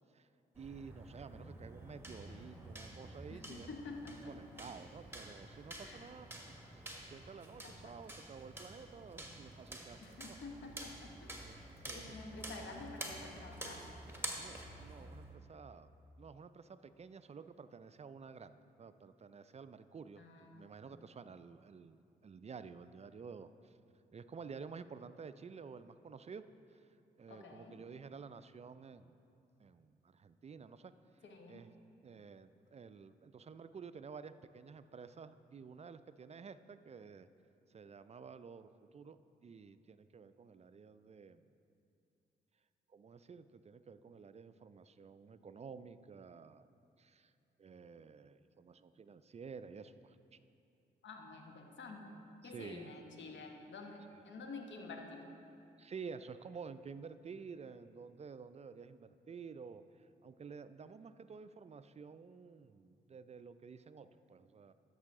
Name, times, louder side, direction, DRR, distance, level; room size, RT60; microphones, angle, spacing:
sound 1, 0.6-15.3, right 1 dB, 10° right, 1.5 m, -49 dB
voice 1, 0.6-3.7 4.2-6.3 6.7-10.4 11.4-12.2 14.4-15.9 16.2-23.7 24.1-26.4 27.2-29.2 29.6-30.9 31.5-31.7 32.0-37.3 37.7-41.4 42.9-46.7 47.0-47.3 47.6-50.2 52.4-52.9 55.8-59.8 60.2-64.7, right 5 dB, 30° right, 13 dB, 0.4 m, -51 dB
voice 2, 3.3-4.3 5.8-6.1 7.6-7.9 10.0-11.3 11.9-13.8 20.2-20.7 27.3-27.8 31.2-31.6 51.0-55.2, left 3 dB, 60° left, 3 dB, 1.1 m, -49 dB
13.0 x 5.5 x 3.6 m, 2.6 s
hypercardioid pair, 40°, 21 cm